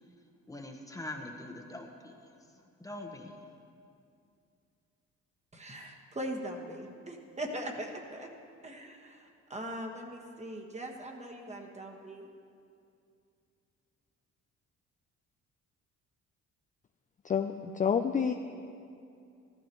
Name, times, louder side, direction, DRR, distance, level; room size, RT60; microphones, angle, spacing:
voice 1, 0.5-2.1 2.8-3.4, left 2 dB, 10° left, 2 dB, 1.2 m, -43 dB
voice 2, 5.5-8.3 8.6-12.3, right 1 dB, 20° right, 2 dB, 1.5 m, -41 dB
voice 3, 17.3-18.3, left 7 dB, 25° left, 7 dB, 0.4 m, -28 dB
14.5 x 13.5 x 3.1 m, 2.5 s
cardioid pair, 90°, 30 cm